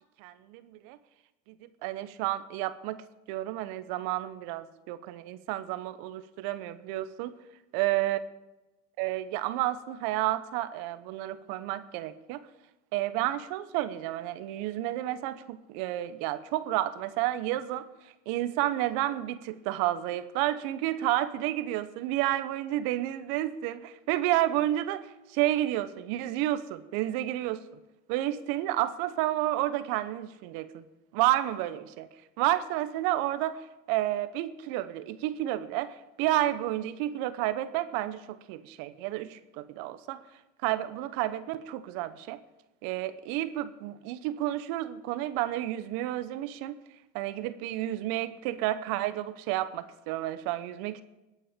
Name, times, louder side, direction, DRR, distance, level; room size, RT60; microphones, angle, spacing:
voice 1, 0.2-1.0 1.6-3.0 3.3-7.3 7.7-8.2 9.0-12.4 12.9-17.8 18.3-27.6 28.1-30.8 31.1-32.1 32.4-40.2 40.6-42.4 42.8-46.8 47.1-51.0, right 14 dB, 70° right, 12 dB, 1.2 m, -31 dB
21.0 x 8.5 x 5.2 m, 1.0 s
hypercardioid pair, 75°, 37 cm